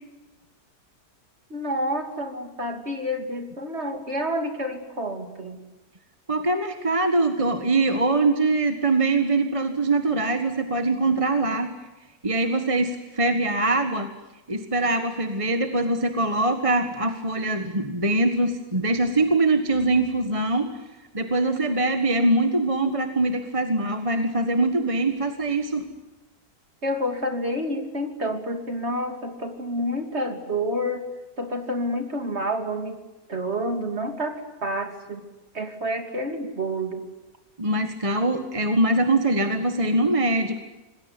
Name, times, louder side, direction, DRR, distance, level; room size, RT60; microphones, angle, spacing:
voice 1, 1.5-5.6 26.8-31.1 31.4-33.0 33.3-35.2 35.5-37.0, equal, 40° right, 6 dB, 3.2 m, -29 dB
voice 2, 6.3-11.7 12.2-14.1 14.5-20.7 21.1-25.9 37.6-40.6, right 2 dB, 20° right, 7 dB, 1.6 m, -23 dB
27.0 x 21.0 x 9.7 m, 1.1 s
omnidirectional pair, 1.7 m